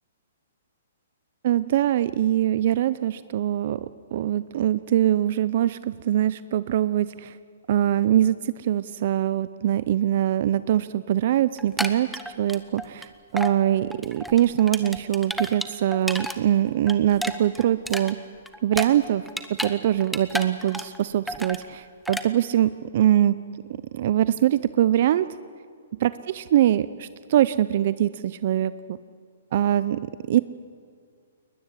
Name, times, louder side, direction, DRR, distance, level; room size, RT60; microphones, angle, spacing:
voice 1, 1.4-7.4 7.7-12.1 12.4-18.2 18.6-19.3 19.6-23.4 23.9-25.3 26.0-29.0 29.5-30.0 30.3-30.4, right 12 dB, 45° right, 16 dB, 0.6 m, -23 dB
sound 1, 11.6-13.1 13.4-13.6 13.9-16.4 16.7-19.7 20.0-21.0 21.3-21.6 22.1-22.3, equal, ahead, 1.0 m, -31 dB
21.5 x 20.5 x 9.8 m, 2.1 s
hypercardioid pair, 160°, 0 cm